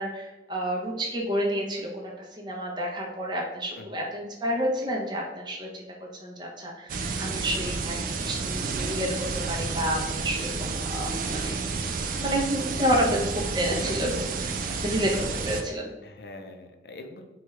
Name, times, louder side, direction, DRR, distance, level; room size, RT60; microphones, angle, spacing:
voice 1, 0.0-2.1 2.4-5.9 6.2-11.6 12.2-13.3 13.5-14.6 14.8-15.9, equal, 25° right, -1 dB, 0.7 m, -29 dB
sound 1, 6.9-15.6, right 4 dB, 50° right, 0.3 m, -30 dB
voice 2, 16.0-17.3, left 2 dB, 65° left, 5 dB, 0.5 m, -44 dB
4.4 x 2.3 x 3.1 m, 1.1 s
head